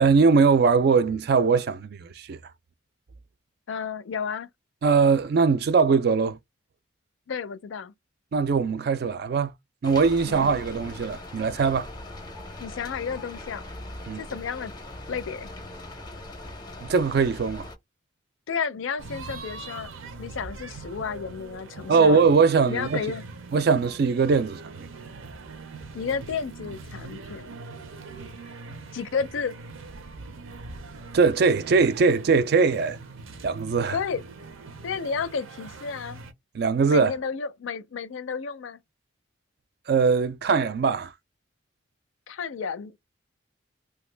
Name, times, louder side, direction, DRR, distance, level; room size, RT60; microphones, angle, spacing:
voice 1, 0.0-2.4 4.8-6.4 8.3-9.5 9.8-11.9 14.1-14.2 16.8-17.7 21.9-23.0 23.5-24.9 31.1-33.0 33.4-34.0 36.5-37.1 39.9-41.1, right 5 dB, 50° right, 0.3 m, -21 dB
voice 2, 3.7-4.5 7.3-7.9 10.3-10.5 12.6-13.7 14.2-14.7 15.1-15.5 18.5-19.9 20.2-22.2 22.7-23.2 25.9-27.5 28.9-29.5 33.9-34.2 34.8-36.2 36.9-38.8 42.3-42.9, left 6 dB, 80° left, 0.4 m, -32 dB
Rain, 9.8-17.8, left 1 dB, 20° left, 0.5 m, -40 dB
sound 1, 19.0-36.3, right 3 dB, 85° right, 0.6 m, -42 dB
2.8 x 2.3 x 3.2 m
head